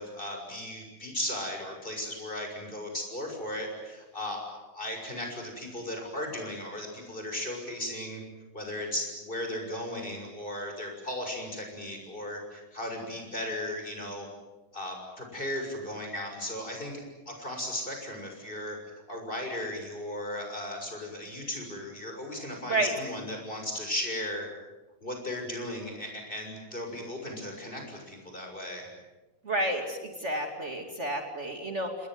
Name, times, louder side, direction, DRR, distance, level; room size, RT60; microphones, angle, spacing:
voice 1, 0.0-8.2 8.5-14.3 14.7-16.9 17.3-18.8 19.1-24.5 25.0-28.9, left 1 dB, 30° left, 2 dB, 6.9 m, -36 dB
voice 2, 29.4-32.1, right 1 dB, 40° right, 4 dB, 2.9 m, -30 dB
29.0 x 20.5 x 9.5 m, 1.1 s
omnidirectional pair, 1.8 m